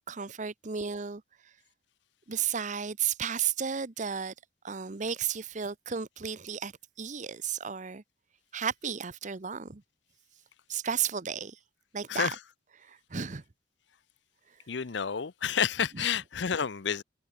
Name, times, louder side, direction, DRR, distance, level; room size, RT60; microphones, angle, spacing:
voice 1, 0.1-1.2 2.3-4.3 4.6-6.7 7.0-8.0 8.5-9.8 10.7-11.6 11.9-12.3 12.8-13.4, right 7 dB, 40° right, 0.8 m, -33 dB
voice 2, 12.1-12.4 14.7-17.0, left 7 dB, 65° left, 0.6 m, -30 dB
head